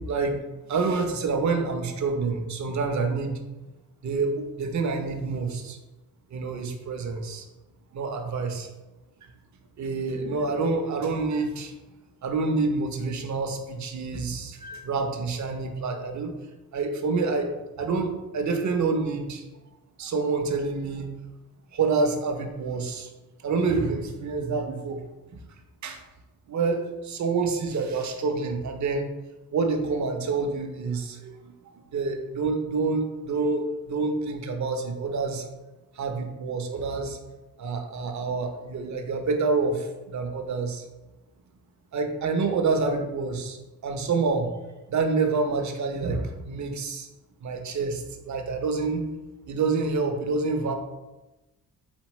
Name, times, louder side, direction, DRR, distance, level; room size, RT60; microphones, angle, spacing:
voice 1, 0.1-0.4 0.7-3.4 4.0-5.8 6.3-7.4 7.9-8.7 9.2-9.3 9.8-11.7 12.2-16.3 16.7-19.4 20.0-21.1 21.7-23.1 23.4-25.0 25.3-25.4 25.8-26.0 26.5-29.1 29.5-31.5 31.9-35.5 36.0-37.2 37.6-40.8 41.9-44.5 44.9-47.1 47.4-49.1 49.5-50.7, right 4 dB, 55° right, 5 dB, 0.6 m, -27 dB
4.3 x 4.0 x 3.0 m, 1.1 s
wide cardioid pair, 165°, 35 cm